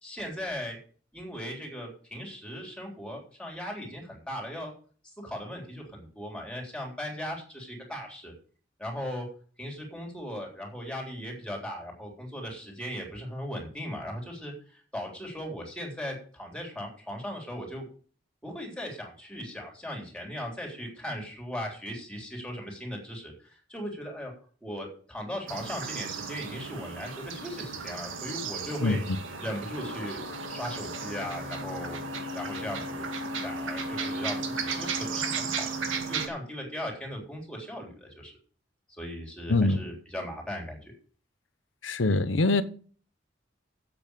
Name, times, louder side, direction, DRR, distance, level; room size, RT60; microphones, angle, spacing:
voice 1, 0.0-0.8 1.1-4.7 5.2-8.3 8.8-9.3 9.6-17.9 18.4-24.3 24.6-29.0 29.4-30.2 30.5-32.0 32.3-33.1 33.4-38.4 39.0-40.9, equal, 5° left, 3.7 m, -38 dB
sound 1, 25.5-36.3, right 3 dB, 85° right, 2.0 m, -34 dB
voice 2, 39.5-39.8 41.8-42.6, left 2 dB, 75° left, 0.9 m, -23 dB
8.2 x 7.0 x 8.2 m
head